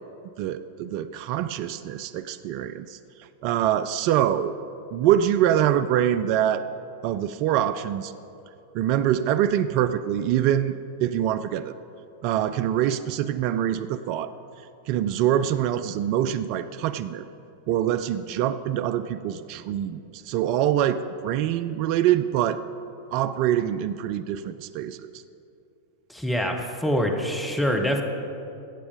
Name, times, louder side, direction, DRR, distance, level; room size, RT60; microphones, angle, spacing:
voice 1, 0.4-4.5 4.9-6.6 7.0-8.1 8.7-10.7 11.0-11.8 12.2-14.3 14.9-17.3 17.7-22.6 23.1-25.1, right 11 dB, 45° right, 12 dB, 0.4 m, -24 dB
voice 2, 26.1-28.0, equal, 5° left, 3 dB, 1.3 m, -25 dB
16.5 x 7.1 x 5.2 m, 2.7 s
figure-of-eight pair, 90°, 0 cm